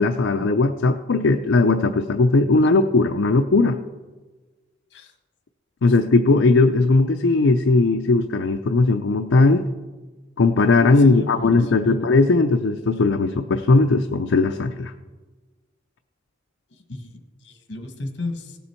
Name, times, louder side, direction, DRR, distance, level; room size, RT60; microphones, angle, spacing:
voice 1, 0.0-3.8 5.8-9.7 10.4-14.9, left 3 dB, 80° left, 5 dB, 0.5 m, -18 dB
voice 2, 10.9-12.0 16.7-18.6, left 2 dB, 65° left, 5 dB, 1.5 m, -33 dB
17.0 x 7.0 x 4.4 m, 1.3 s
head